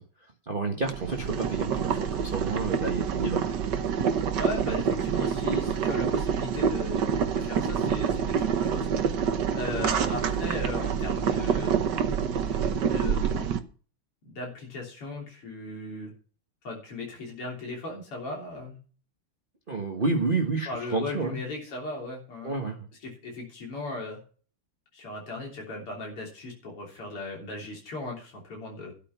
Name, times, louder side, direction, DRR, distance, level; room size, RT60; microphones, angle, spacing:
voice 1, 0.0-3.5 19.7-21.4 22.4-22.9, right 3 dB, 25° right, 2 dB, 1.4 m, -30 dB
Boiling, 0.8-13.6, right 7 dB, 55° right, 1.6 m, -27 dB
voice 2, 4.4-9.2 9.5-11.8 12.5-13.5 14.3-16.1 16.6-18.8 20.7-22.5 23.0-24.2 24.9-28.9, left 2 dB, 90° left, -1 dB, 4.3 m, -37 dB
13.0 x 8.1 x 5.9 m, 0.39 s
omnidirectional pair, 2.4 m